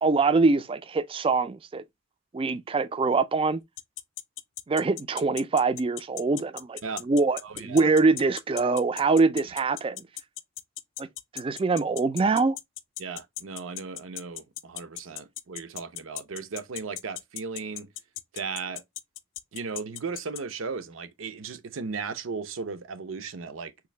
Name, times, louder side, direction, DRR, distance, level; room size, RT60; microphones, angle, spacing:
voice 1, 0.0-1.8 2.3-3.6 4.7-10.0 11.0-11.1 11.3-12.6, right 3 dB, 25° right, 0.3 m, -24 dB
sound 1, 3.8-20.4, left 15 dB, 65° left, 0.4 m, -37 dB
voice 2, 7.4-7.9 13.0-17.9 18.3-18.8 19.5-23.7, right 5 dB, 85° right, 0.6 m, -36 dB
3.7 x 2.6 x 3.1 m
head